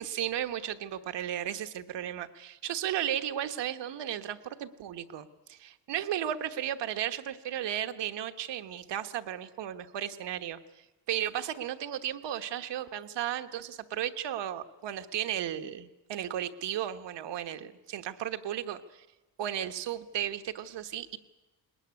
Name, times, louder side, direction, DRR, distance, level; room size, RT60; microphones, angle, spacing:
voice 1, 0.0-10.6 11.1-19.1 19.4-21.2, right 11 dB, 75° right, 9 dB, 1.2 m, -34 dB
20.0 x 20.0 x 9.6 m, 1.1 s
cardioid pair, 165°, 43 cm